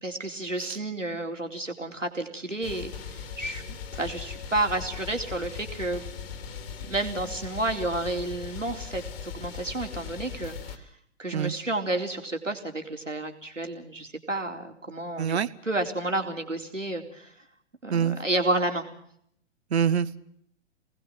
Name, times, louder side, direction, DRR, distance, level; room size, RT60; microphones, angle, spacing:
voice 1, 0.0-3.6 3.9-6.1 6.8-10.9 11.2-15.4 15.6-17.3 17.8-18.9, right 2 dB, 85° right, 4 dB, 4.0 m, -31 dB
sound 1, 2.6-10.8, left 6 dB, 55° left, 2.9 m, -39 dB
voice 2, 15.2-15.5 17.9-18.2 19.7-20.2, right 7 dB, 60° right, 16 dB, 1.3 m, -25 dB
28.5 x 20.0 x 5.9 m, 0.70 s
figure-of-eight pair, 115°, 37 cm